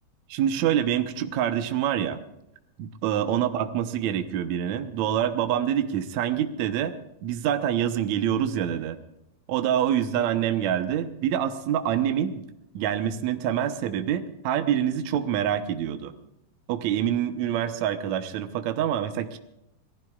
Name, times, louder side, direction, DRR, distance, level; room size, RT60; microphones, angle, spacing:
voice 1, 0.3-2.2 2.8-6.9 7.2-9.0 9.5-12.4 12.7-16.1 16.7-19.4, right 10 dB, 85° right, 8 dB, 1.6 m, -26 dB
27.0 x 19.5 x 2.4 m, 0.83 s
omnidirectional pair, 4.7 m